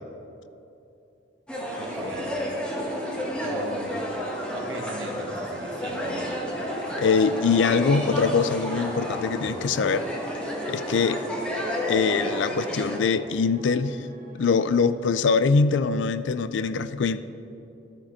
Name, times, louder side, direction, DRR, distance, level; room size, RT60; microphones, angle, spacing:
sound 1, 1.5-13.0, equal, 5° left, 1.3 m, -31 dB
sound 2, 1.8-15.6, equal, 45° right, 2.0 m, -46 dB
voice 1, 1.8-2.3 3.4-4.1 4.5-6.3, right 2 dB, 70° right, 3 dB, 1.2 m, -39 dB
voice 2, 7.0-10.1 10.7-11.2 11.9-14.1 14.4-17.2, left 5 dB, 80° left, 13 dB, 0.4 m, -23 dB
13.5 x 6.5 x 4.4 m, 2.9 s
head